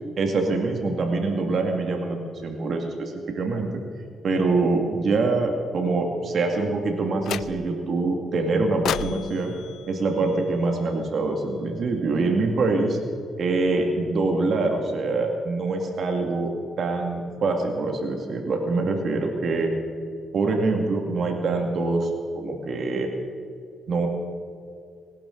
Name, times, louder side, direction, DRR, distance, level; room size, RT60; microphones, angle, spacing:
voice 1, 0.2-3.7 4.2-9.5 9.9-13.0 13.4-16.5 16.8-19.7 20.3-23.1 23.9-24.1, right 3 dB, 55° right, 3 dB, 2.0 m, -24 dB
sound 1, 7.2-7.9 8.8-11.1, left 10 dB, 70° left, 0.3 m, -34 dB
27.5 x 11.5 x 3.9 m, 2.4 s
cardioid pair, 90°, 0 cm